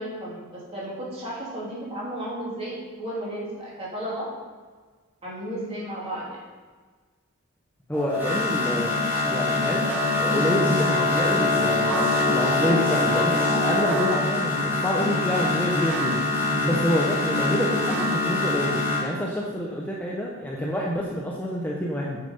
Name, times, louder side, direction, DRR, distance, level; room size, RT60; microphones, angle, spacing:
voice 1, 0.0-4.3 5.2-6.4, right 1 dB, 30° right, -6 dB, 3.1 m, -33 dB
voice 2, 7.9-8.9 9.3-9.8 10.2-16.2 16.6-22.2, equal, 10° left, -3 dB, 0.9 m, -27 dB
sound 1, 7.9-19.0, left 2 dB, 10° right, 2.7 m, -24 dB
8.9 x 5.9 x 5.4 m, 1.4 s
head